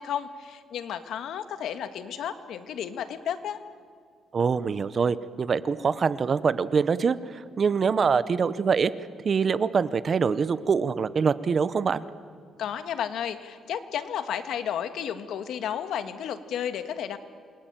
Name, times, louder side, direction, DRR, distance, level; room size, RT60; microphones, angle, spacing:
voice 1, 0.0-3.6 12.6-17.2, left 9 dB, 70° left, 9 dB, 1.7 m, -32 dB
voice 2, 4.3-8.9 9.2-12.0, right 5 dB, 35° right, 15 dB, 0.8 m, -24 dB
28.0 x 22.0 x 9.1 m, 2.1 s
cardioid pair, 160°, 0 cm